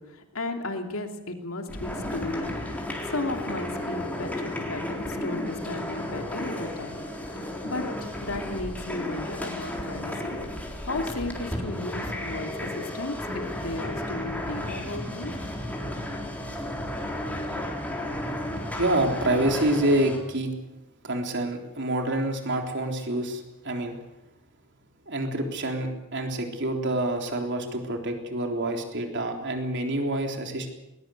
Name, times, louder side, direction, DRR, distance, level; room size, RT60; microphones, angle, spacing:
voice 1, 0.0-2.6 3.1-7.0 7.4-10.4 10.8-15.3, left 2 dB, 65° left, 4 dB, 3.0 m, -34 dB
sound 1, 1.7-20.2, left 1 dB, 5° left, 3.8 m, -33 dB
voice 2, 18.8-20.5 21.0-24.0 25.1-30.7, right 1 dB, 55° right, 3 dB, 3.6 m, -27 dB
20.5 x 20.5 x 7.9 m, 0.96 s
head